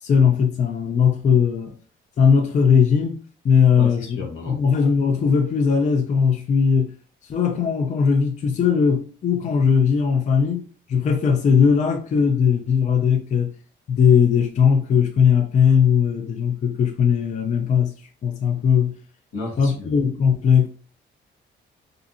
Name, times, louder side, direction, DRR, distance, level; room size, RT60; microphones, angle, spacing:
voice 1, 0.0-1.8 2.2-4.1 4.5-6.9 7.3-13.5 13.9-17.9 18.2-18.9 19.6-20.7, left 6 dB, 40° left, 0.4 m, -19 dB
voice 2, 3.8-4.6 19.3-19.9, left 2 dB, 75° left, 1.0 m, -33 dB
2.6 x 2.4 x 2.5 m
cardioid pair, 90°, 20 cm